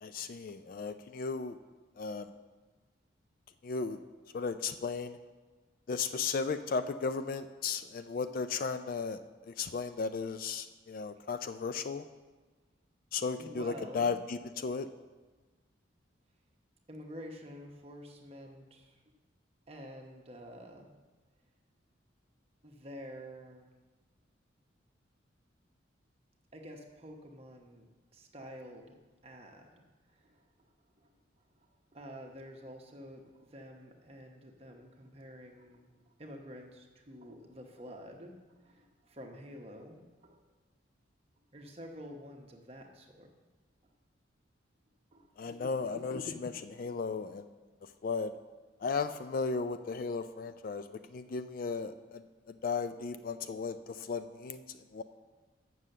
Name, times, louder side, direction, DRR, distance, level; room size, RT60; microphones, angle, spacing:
voice 1, 0.0-1.6 2.0-2.3 3.6-4.0 4.3-5.2 5.9-12.0 13.1-14.9 45.4-47.5 48.0-48.3 48.8-55.0, left 5 dB, 45° left, 10 dB, 0.3 m, -35 dB
voice 2, 13.4-14.2 16.9-19.0 19.7-20.9 22.6-23.7 26.5-27.9 28.1-28.8 29.2-29.8 30.1-30.5 31.0-31.1 31.9-40.4 41.5-43.3 43.8-43.9 45.1-45.3 46.9-47.0, equal, 30° right, 2 dB, 0.9 m, -49 dB
7.4 x 6.2 x 6.7 m, 1.3 s
head